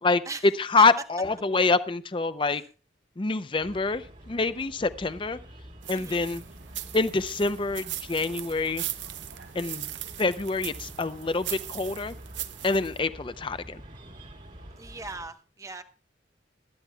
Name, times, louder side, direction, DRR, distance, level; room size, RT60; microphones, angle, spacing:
voice 1, 0.6-2.6 3.2-5.4 5.9-6.4 6.9-8.8 9.5-9.9 10.2-12.1 12.6-13.8, left 3 dB, 25° left, 13 dB, 0.5 m, -26 dB
sound 1, 3.5-15.3, right 1 dB, 45° right, 2.0 m, -48 dB
sound 2, 5.8-13.0, right 13 dB, 80° right, 0.8 m, -39 dB
voice 2, 14.8-15.8, right 3 dB, 20° right, 9 dB, 0.9 m, -40 dB
20.5 x 12.5 x 2.3 m, 0.35 s
head